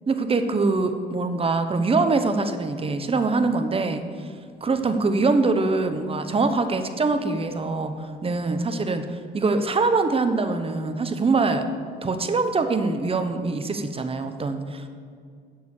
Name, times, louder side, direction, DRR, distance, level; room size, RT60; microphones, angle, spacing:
voice 1, 0.1-4.3 4.6-11.7 12.0-14.9, right 3 dB, 30° right, 8 dB, 0.9 m, -24 dB
7.7 x 6.5 x 7.1 m, 2.2 s
cardioid pair, 90°, 20 cm